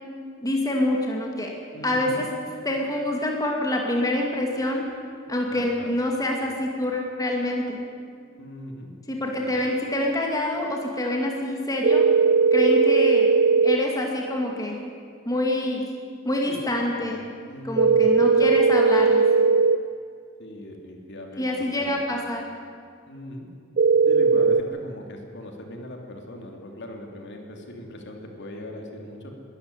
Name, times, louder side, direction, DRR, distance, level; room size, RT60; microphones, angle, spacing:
voice 1, 0.4-1.5 1.8-2.2 2.6-4.8 5.3-7.8 9.1-12.0 12.5-13.3 13.6-14.8 15.2-15.8 16.2-17.2 17.6-19.2 21.4-22.4, left 1 dB, 15° left, 0 dB, 2.3 m, -26 dB
voice 2, 1.7-2.3 5.5-6.0 8.4-8.9 9.4-9.6 16.3-16.6 16.9-17.1 17.5-18.3 20.4-22.0 23.1-23.5 24.1-29.3, left 1 dB, 55° left, 2 dB, 3.1 m, -39 dB
sound 1, 11.8-13.8 17.8-19.8 23.8-24.6, right 5 dB, 45° right, 0.5 m, -18 dB
22.0 x 13.0 x 9.8 m, 2.2 s
head